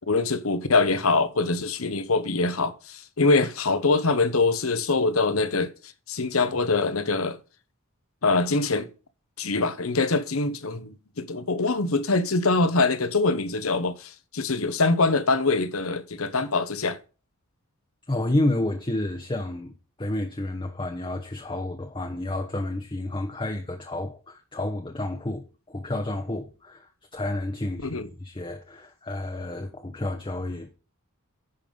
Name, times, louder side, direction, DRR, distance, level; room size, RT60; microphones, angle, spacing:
voice 1, 0.1-5.7 6.1-7.4 8.2-8.9 9.4-17.0 27.8-28.1, left 3 dB, 75° left, 1.1 m, -24 dB
voice 2, 18.1-30.7, left 1 dB, 25° left, 0.9 m, -30 dB
10.0 x 5.6 x 5.4 m
head